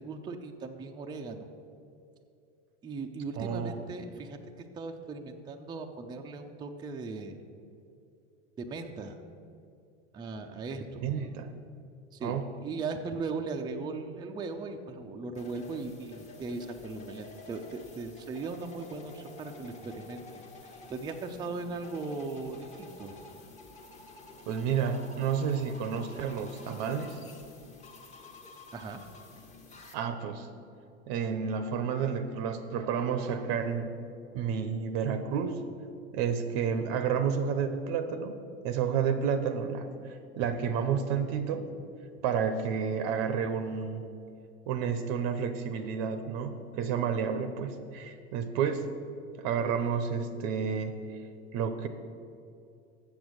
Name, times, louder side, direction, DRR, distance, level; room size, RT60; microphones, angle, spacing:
voice 1, 0.0-1.5 2.8-7.4 8.6-9.2 10.1-11.1 12.1-20.2 20.9-23.2 28.7-29.0, right 3 dB, 15° right, 4 dB, 0.4 m, -38 dB
voice 2, 3.4-3.8 11.0-11.5 12.2-12.5 24.5-27.2 29.9-30.5 31.1-33.9 34.3-35.6 36.1-38.4 38.6-41.7 42.2-44.1 44.7-48.9 49.4-51.0 51.5-51.9, right 7 dB, 50° right, 9 dB, 0.7 m, -30 dB
sound 1, 15.3-29.9, left 3 dB, 20° left, 1.0 m, -50 dB
7.2 x 7.0 x 6.3 m, 2.6 s
supercardioid pair, 120°, 35 cm